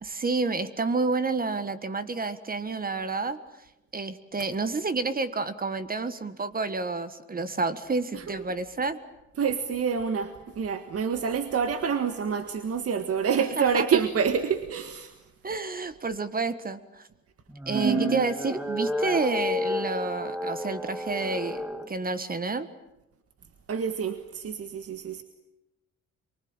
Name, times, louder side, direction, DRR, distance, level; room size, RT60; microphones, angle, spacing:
voice 1, 0.0-3.4 3.9-9.0 13.6-13.9 15.4-17.0 17.7-22.7, right 3 dB, 30° right, 13 dB, 1.5 m, -29 dB
voice 2, 9.4-15.1 17.7-18.2 23.7-25.2, right 6 dB, 50° right, 9 dB, 1.7 m, -27 dB
sound 1, 17.5-21.9, left 1 dB, 5° right, 1.9 m, -31 dB
24.5 x 23.5 x 8.9 m, 0.93 s
cardioid pair, 90°, 30 cm